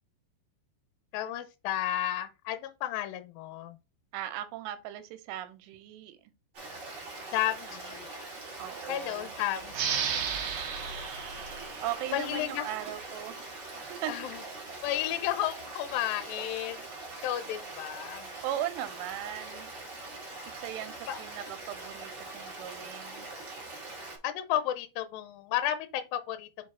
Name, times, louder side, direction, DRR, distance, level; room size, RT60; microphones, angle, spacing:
voice 1, 1.1-3.8 7.3-8.1 8.4-8.6 8.9-10.0 10.3-10.9 12.1-12.7 14.1-14.4 14.8-16.9 17.2-18.3 20.3-20.5 21.1-21.2 24.2-26.5, left 12 dB, 80° left, 2.1 m, -33 dB
voice 2, 4.1-6.3 8.6-9.4 11.8-14.1 18.4-19.7 20.6-23.3, right 12 dB, 85° right, 2.9 m, -38 dB
Stream, 6.5-24.2, right 2 dB, 40° right, 1.7 m, -43 dB
sound 1, 9.7-13.0, right 7 dB, 65° right, 2.0 m, -34 dB
6.4 x 4.6 x 3.7 m
omnidirectional pair, 4.8 m